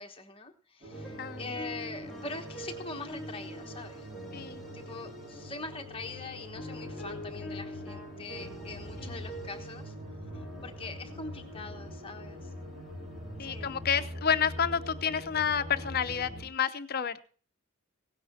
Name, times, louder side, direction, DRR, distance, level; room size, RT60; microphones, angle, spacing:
voice 1, 0.0-4.1 4.7-9.9 10.6-12.5 13.4-13.8, left 3 dB, 25° left, 4 dB, 1.2 m, -43 dB
sound 1, 0.8-16.4, equal, 35° right, 5.4 m, -44 dB
sound 2, 0.9-5.8 6.3-10.0 10.3-15.1, equal, ahead, 2.2 m, -46 dB
voice 2, 13.4-17.3, left 7 dB, 45° left, 12 dB, 0.6 m, -30 dB
17.0 x 9.8 x 4.1 m, 0.42 s
head